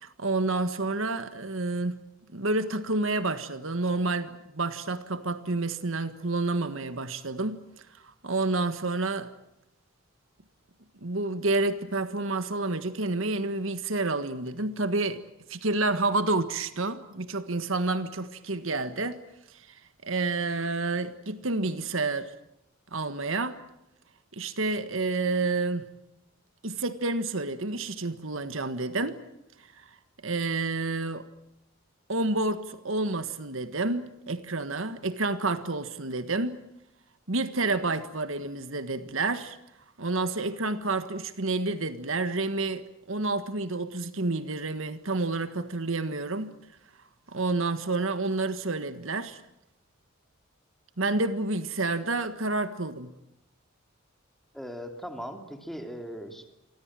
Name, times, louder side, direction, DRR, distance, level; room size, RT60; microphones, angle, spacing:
voice 1, 0.0-2.0 2.3-7.6 8.0-9.3 11.0-15.2 15.5-19.2 19.7-19.8 20.0-22.3 22.9-23.6 24.3-25.9 26.6-29.2 30.2-31.3 32.1-36.6 37.3-39.6 40.0-46.5 47.3-49.4 51.0-53.1, right 3 dB, 70° right, 1.6 m, -29 dB
voice 2, 54.5-56.4, equal, ahead, 3.1 m, -39 dB
29.0 x 24.5 x 7.6 m
head